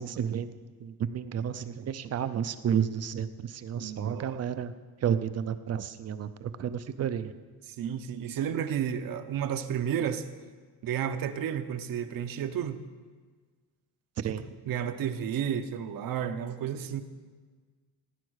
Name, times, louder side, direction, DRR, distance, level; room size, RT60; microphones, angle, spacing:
voice 1, 0.0-4.7 5.0-7.3 14.2-14.4, right 8 dB, 40° right, 12 dB, 0.6 m, -31 dB
voice 2, 3.8-4.4 7.7-10.2 10.8-12.8 14.3-17.0, right 9 dB, 60° right, 9 dB, 1.0 m, -32 dB
17.0 x 9.7 x 6.5 m, 1.5 s
cardioid pair, 175°, 39 cm